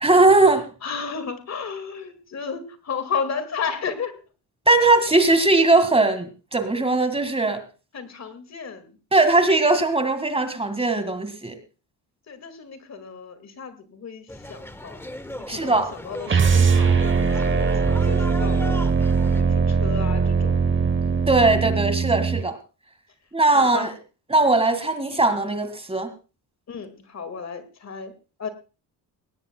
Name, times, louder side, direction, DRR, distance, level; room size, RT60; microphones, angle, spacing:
voice 1, 0.0-0.6 4.7-7.6 9.1-11.6 15.5-15.9 21.3-22.6 23.3-23.9 24.3-26.1, right 2 dB, 15° right, 9 dB, 1.8 m, -19 dB
voice 2, 0.8-4.2 7.9-9.0 12.3-15.0 15.4-18.9 19.4-20.6 23.5-23.9 26.7-28.1 28.4-28.5, left 6 dB, 40° left, 11 dB, 2.0 m, -33 dB
sound 1, 14.3-19.4, left 1 dB, 5° left, 1.1 m, -37 dB
sound 2, 16.3-22.4, right 5 dB, 30° right, 1.0 m, -20 dB
20.0 x 18.0 x 2.2 m, 0.33 s
cardioid pair, 110°, 40 cm